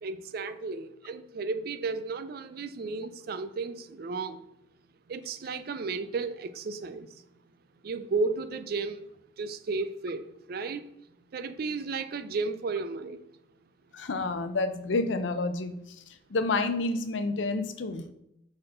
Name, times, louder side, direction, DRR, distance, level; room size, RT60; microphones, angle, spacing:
voice 1, 0.0-4.4 5.1-7.1 7.8-9.1 9.4-10.8 11.3-13.2, right 4 dB, 55° right, 0.4 m, -33 dB
voice 2, 13.9-15.7 16.3-18.0, left 3 dB, 85° left, 0.6 m, -29 dB
5.8 x 4.4 x 3.7 m
head